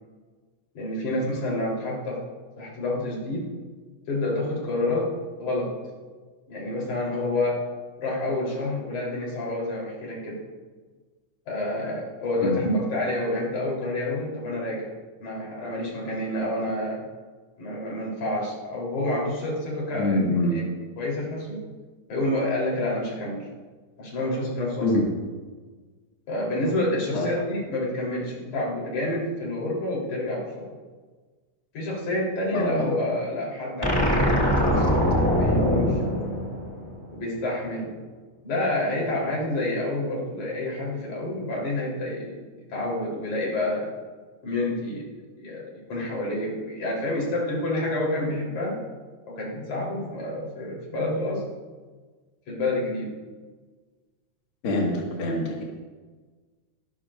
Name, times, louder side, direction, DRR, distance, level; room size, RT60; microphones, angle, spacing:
voice 1, 0.7-2.2 2.6-3.5 4.1-5.1 5.4-5.7 6.5-7.6 8.0-10.4 11.5-14.9 15.2-17.0 17.6-20.2 20.5-20.6 21.0-21.6 22.1-23.4 24.0-24.9 26.3-30.7 31.7-36.3 37.1-38.0 38.4-42.4 42.7-43.9 44.4-45.0 45.4-48.8 49.3-51.4 52.5-53.1, left 1 dB, 80° left, -4 dB, 5.0 m, -28 dB
voice 2, 19.9-20.5 24.8-25.1 27.1-27.3 32.5-32.9 54.6-55.6, left 2 dB, 50° left, -2 dB, 2.4 m, -24 dB
sound 1, 33.8-37.1, equal, 10° left, 2.0 m, -22 dB
24.0 x 13.0 x 2.5 m, 1.4 s
omnidirectional pair, 3.4 m